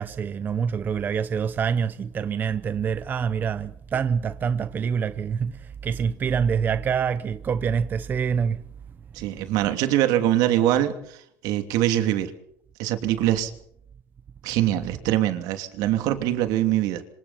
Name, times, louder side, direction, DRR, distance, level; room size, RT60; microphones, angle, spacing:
voice 1, 0.0-8.6, right 7 dB, 30° right, 0.8 m, -26 dB
voice 2, 9.1-12.3 12.8-13.5 14.4-17.0, right 13 dB, 70° right, 2.9 m, -23 dB
26.5 x 25.5 x 4.4 m
cardioid pair, 140°, 7 cm